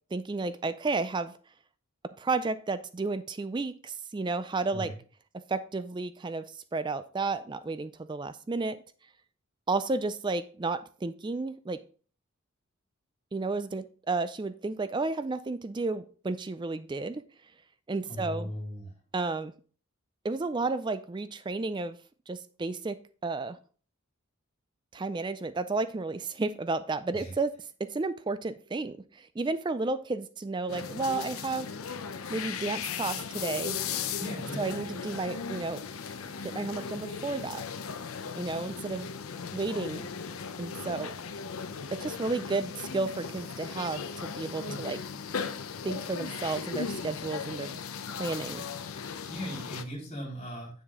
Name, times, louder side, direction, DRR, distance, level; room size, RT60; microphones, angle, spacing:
voice 1, 0.1-1.3 2.2-4.9 5.5-8.8 9.7-11.8 13.3-17.2 17.9-18.5 19.1-19.5 20.2-22.0 22.3-23.6 24.9-31.7 32.3-33.8 34.6-35.8 36.4-37.6 38.3-39.1 39.5-40.1 40.6-41.1 41.9-45.0 45.8-47.8 48.2-48.6, right 3 dB, 20° right, 13 dB, 0.3 m, -32 dB
voice 2, 18.1-18.9 27.1-27.3 34.2-34.8 44.6-44.9 49.3-50.7, equal, 30° left, -2 dB, 3.6 m, -38 dB
sound 1, 30.7-49.8, left 6 dB, 75° left, 0.7 m, -37 dB
8.2 x 7.2 x 3.6 m, 0.41 s
head